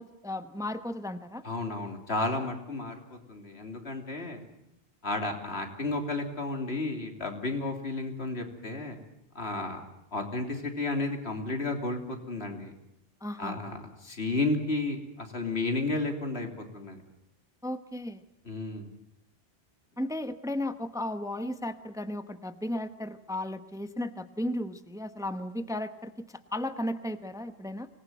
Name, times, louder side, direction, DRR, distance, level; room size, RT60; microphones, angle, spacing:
voice 1, 0.0-1.4 13.2-13.6 17.6-18.2 20.0-26.3 26.5-27.9, left 1 dB, 5° right, 10 dB, 1.0 m, -35 dB
voice 2, 1.4-4.4 5.0-9.0 9.3-9.8 10.1-12.7 13.4-17.0 18.4-18.9, left 2 dB, 80° left, 4 dB, 3.5 m, -32 dB
25.5 x 19.5 x 9.4 m, 0.84 s
omnidirectional pair, 1.1 m